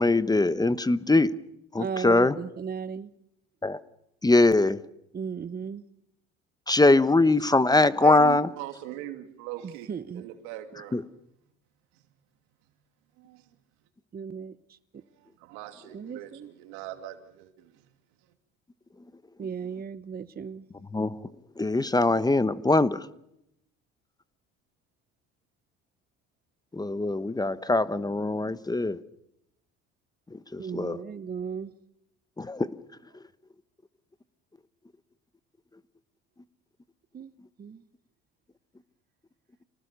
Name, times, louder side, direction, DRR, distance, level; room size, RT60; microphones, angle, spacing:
voice 1, 0.0-1.3 1.7-2.3 3.6-3.8 4.2-4.8 6.7-8.5 10.9-11.0 20.9-21.1 21.6-23.0 26.7-29.0 30.5-31.0 32.4-32.7, left 2 dB, 15° left, 1.1 m, -22 dB
voice 2, 1.8-3.1 5.1-5.8 9.6-10.3 14.1-15.0 15.9-16.5 19.4-20.7 30.6-31.7 37.1-37.3 37.6-37.8, right 6 dB, 30° right, 1.0 m, -36 dB
voice 3, 8.0-11.1 11.9-12.0 13.2-13.6 15.0-17.8, right 13 dB, 80° right, 2.7 m, -41 dB
27.0 x 19.0 x 6.8 m
supercardioid pair, 85°, 29 cm